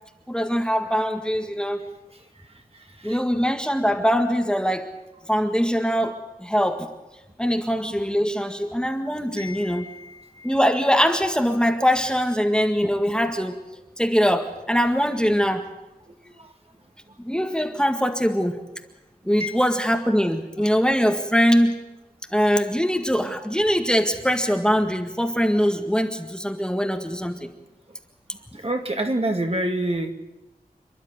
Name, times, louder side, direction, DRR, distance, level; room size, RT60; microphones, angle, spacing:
voice 1, 0.3-1.9 3.0-4.9 5.3-6.9 7.4-9.9 10.4-13.6 14.0-15.7 17.2-18.6 19.3-21.7 22.3-27.5, equal, 5° left, 5 dB, 1.8 m, -22 dB
voice 2, 9.4-10.5 16.4-16.5 19.4-19.6 28.5-30.1, right 1 dB, 40° right, 4 dB, 2.3 m, -28 dB
28.0 x 11.5 x 9.6 m, 1.0 s
wide cardioid pair, 70°, 16 cm